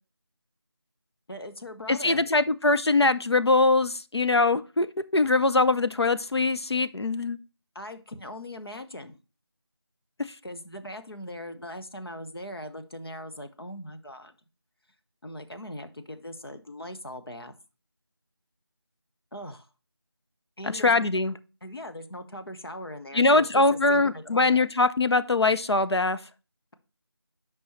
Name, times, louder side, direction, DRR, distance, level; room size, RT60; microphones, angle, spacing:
voice 1, 1.3-2.2 7.7-9.2 10.4-14.3 15.2-17.5 19.3-19.7 20.6-21.1 21.6-24.6, left 1 dB, 65° left, 1.2 m, -40 dB
voice 2, 1.9-7.4 20.7-21.3 23.1-26.2, left 3 dB, 80° left, 0.7 m, -22 dB
8.4 x 5.4 x 3.2 m
figure-of-eight pair, 180°, 14 cm